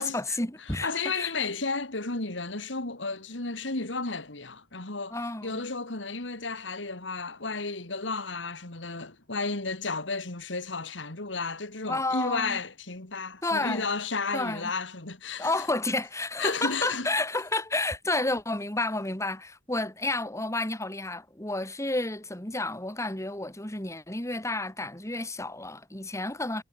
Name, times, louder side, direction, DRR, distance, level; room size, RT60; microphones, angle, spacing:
voice 1, 0.0-1.3 5.1-5.7 11.9-12.6 13.4-13.9 14.3-14.7 15.4-26.6, left 2 dB, 15° left, 3.3 m, -31 dB
voice 2, 0.8-5.2 5.4-15.5 16.4-17.1, left 4 dB, 80° left, 3.1 m, -33 dB
head